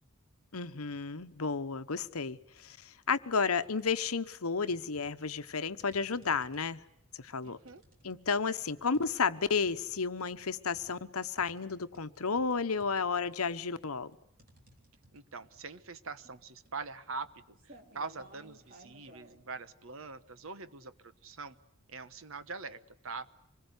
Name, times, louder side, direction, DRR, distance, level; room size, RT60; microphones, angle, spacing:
voice 1, 0.5-6.8 7.2-7.6 8.0-14.1, left 5 dB, 80° left, 12 dB, 1.0 m, -32 dB
sound 1, 2.4-2.8 3.2-4.1 4.7-19.4, right 1 dB, 40° right, 3.9 m, -60 dB
voice 2, 7.4-7.8 15.1-21.6 21.9-23.3, right 4 dB, 65° right, 13 dB, 1.2 m, -43 dB
25.5 x 21.0 x 8.1 m, 0.80 s
head